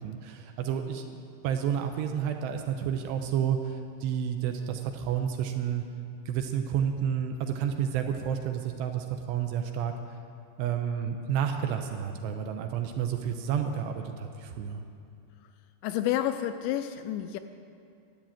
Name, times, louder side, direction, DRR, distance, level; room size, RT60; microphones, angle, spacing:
voice 1, 0.0-5.8 6.3-9.9 10.6-14.8, right 8 dB, 80° right, 5 dB, 2.7 m, -30 dB
voice 2, 15.8-17.4, left 12 dB, 85° left, 9 dB, 2.6 m, -29 dB
13.0 x 9.1 x 8.6 m, 2.4 s
omnidirectional pair, 5.4 m